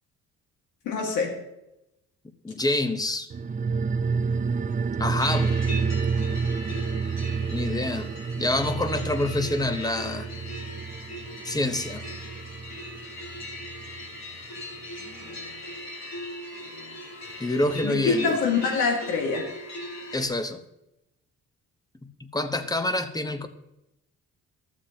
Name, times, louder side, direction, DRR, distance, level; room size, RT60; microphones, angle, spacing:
voice 1, 0.9-1.3 17.8-19.4, left 5 dB, 90° left, 1 dB, 1.9 m, -25 dB
voice 2, 2.4-3.3 5.0-5.6 7.5-10.3 11.4-12.0 17.4-18.4 20.1-20.6 22.3-23.5, left 2 dB, 15° left, 9 dB, 0.9 m, -27 dB
sound 1, 3.3-14.2 14.4-14.5, right 5 dB, 25° right, 0.4 m, -29 dB
sound 2, 5.2-20.3, left 1 dB, 65° left, 3.1 m, -39 dB
14.5 x 7.3 x 2.9 m, 0.88 s
cardioid pair, 90°, 30 cm